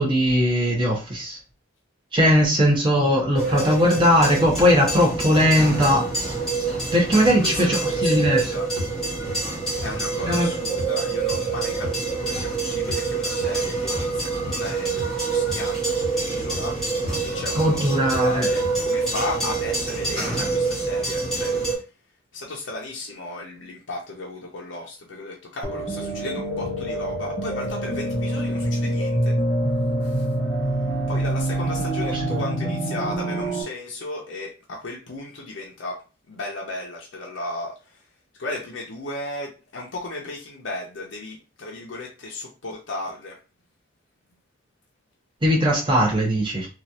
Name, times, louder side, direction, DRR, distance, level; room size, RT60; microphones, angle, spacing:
voice 1, 0.0-1.4 2.1-6.1 6.9-8.6 10.2-10.5 17.1-17.2 17.5-18.5 32.0-32.4 45.4-46.7, equal, 25° right, 0.9 m, -20 dB
sound 1, 3.4-21.8, right 3 dB, ahead, 1.3 m, -26 dB
voice 2, 7.4-8.6 9.8-16.8 17.2-21.6 22.3-29.3 30.1-30.2 31.1-36.0 36.3-37.7 38.4-43.4, left 2 dB, 65° left, 0.6 m, -35 dB
sound 2, 8.2-8.4 8.8-8.9 9.3-9.5 9.8-10.0 10.3-10.4 10.8-10.9 11.3-11.5 11.8-12.0 12.3-12.5 12.9-13.0 13.4-13.6 13.9-14.1 14.5-14.7 15.0-15.1 15.5-15.6 16.0-16.2 16.5-16.7 17.0-17.2 17.6-17.7 18.1-18.3 18.6-18.8, left 1 dB, 50° right, 1.7 m, -34 dB
sound 3, 25.6-33.6, right 1 dB, 25° left, 0.9 m, -25 dB
3.0 x 2.4 x 2.7 m
head